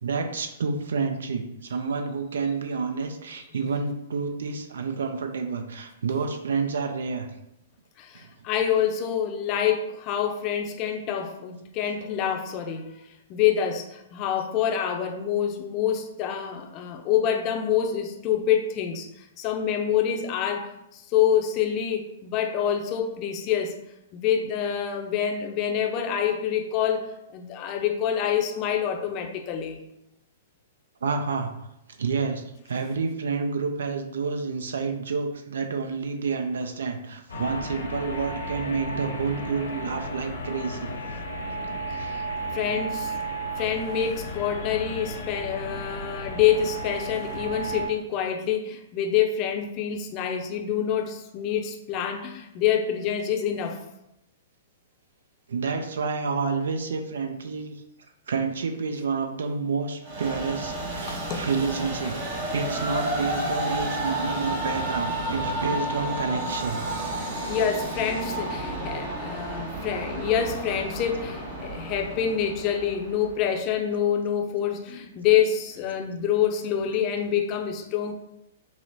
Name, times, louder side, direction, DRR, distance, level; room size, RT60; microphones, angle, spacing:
voice 1, 0.0-7.3 8.1-8.3 31.0-31.7 32.0-40.9 41.7-42.3 55.5-57.8 58.3-66.8, right 4 dB, 70° right, 6 dB, 0.4 m, -29 dB
voice 2, 8.0-13.0 13.3-19.1 19.4-23.7 24.1-29.8 42.5-43.1 43.6-53.8 61.0-61.5 67.5-78.1, left 9 dB, 35° left, 3 dB, 0.5 m, -26 dB
sound 1, 37.3-47.9, right 1 dB, 80° left, 0.9 m, -34 dB
Train, 60.0-73.5, right 1 dB, 50° right, 1.0 m, -31 dB
5.5 x 2.0 x 2.6 m, 0.83 s
figure-of-eight pair, 110°, 0 cm